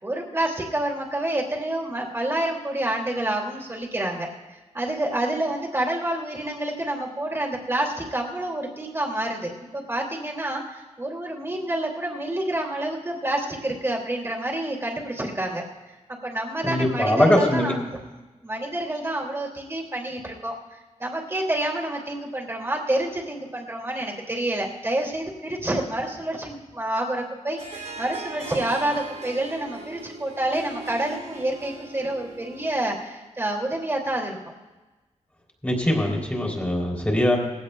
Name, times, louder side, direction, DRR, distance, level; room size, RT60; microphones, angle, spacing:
voice 1, 0.0-15.6 16.1-17.8 18.4-20.6 21.0-34.4, right 1 dB, 20° right, 0 dB, 2.4 m, -28 dB
voice 2, 16.6-17.7 35.6-37.4, left 1 dB, 10° left, -1 dB, 3.2 m, -21 dB
Harp, 27.6-33.0, right 2 dB, 70° right, 3.1 m, -39 dB
20.5 x 16.0 x 2.3 m, 1.2 s
wide cardioid pair, 125°, 13 cm